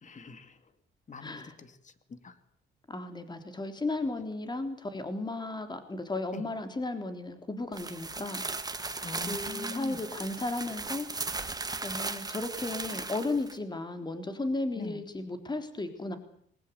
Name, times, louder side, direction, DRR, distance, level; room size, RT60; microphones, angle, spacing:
voice 1, 0.0-0.6 1.1-2.3 6.3-6.5 9.0-10.0 14.7-15.0, left 4 dB, 40° left, 11 dB, 2.7 m, -43 dB
voice 2, 1.2-1.5 2.9-8.4 9.3-11.1 11.4-11.5 11.8-16.2, left 2 dB, 20° left, 8 dB, 3.7 m, -34 dB
sound 1, 7.7-13.6, right 3 dB, 20° right, 2.1 m, -37 dB
21.5 x 20.0 x 8.3 m, 0.64 s
cardioid pair, 90°, 20 cm